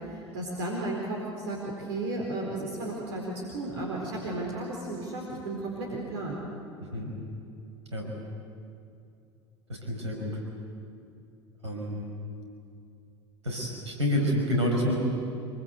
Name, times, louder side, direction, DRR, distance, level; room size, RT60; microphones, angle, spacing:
voice 1, 0.0-6.4, right 2 dB, 65° right, -1 dB, 4.4 m, -34 dB
voice 2, 6.8-7.1 7.9-8.1 9.7-10.4 11.6-12.0 13.4-14.9, left 1 dB, 85° right, 0 dB, 5.8 m, -28 dB
26.5 x 24.0 x 8.0 m, 2.5 s
figure-of-eight pair, 70°, 14 cm